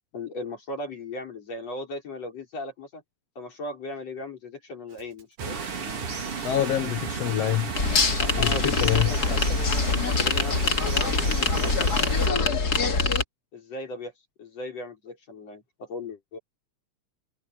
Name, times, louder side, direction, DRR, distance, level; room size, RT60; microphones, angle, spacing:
voice 1, 0.1-3.0 3.4-5.6 8.2-9.6 10.0-11.1 11.4-11.9 12.3-13.2 13.5-14.1 14.4-16.4, left 2 dB, 55° left, 6.2 m, -37 dB
Drum kit, 4.9-10.8, right 6 dB, 75° right, 4.2 m, -42 dB
sound 1, 5.4-12.3, right 5 dB, 50° right, 3.7 m, -33 dB
voice 2, 6.4-7.7 8.4-9.1, left 12 dB, 70° left, 1.6 m, -26 dB
sound 2, 7.8-13.2, left 4 dB, 35° left, 2.0 m, -24 dB
omnidirectional pair, 3.5 m